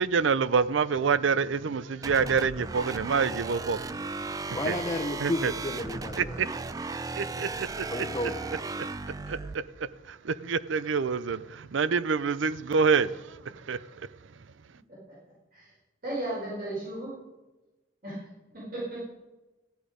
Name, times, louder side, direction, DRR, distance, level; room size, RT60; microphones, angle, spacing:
voice 1, 0.0-3.8 4.2-4.4 4.6-4.8 5.2-5.5 6.2-6.5 6.8-8.1 9.3-14.1, right 5 dB, 75° right, 0.5 m, -27 dB
sound 1, 2.0-9.6, right 3 dB, 20° right, 0.3 m, -36 dB
voice 2, 4.5-6.4 7.9-8.4, left 1 dB, 20° left, 0.8 m, -32 dB
voice 3, 16.0-17.1 18.0-18.2 18.5-19.0, right 1 dB, 45° right, 4.8 m, -34 dB
14.0 x 10.0 x 5.0 m
head